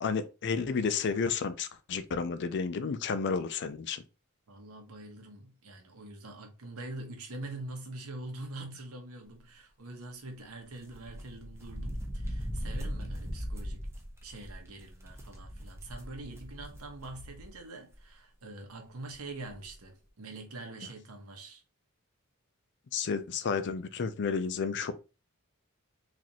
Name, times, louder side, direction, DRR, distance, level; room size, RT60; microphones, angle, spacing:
voice 1, 0.0-4.0 22.9-24.9, left 5 dB, 55° left, 0.4 m, -31 dB
voice 2, 4.5-13.9 14.2-21.6, right 2 dB, 75° right, 1.0 m, -44 dB
sound 1, 10.8-17.6 17.9-18.0 19.1-19.2 19.4-19.7, equal, 10° right, 0.7 m, -39 dB
4.0 x 2.5 x 2.9 m
head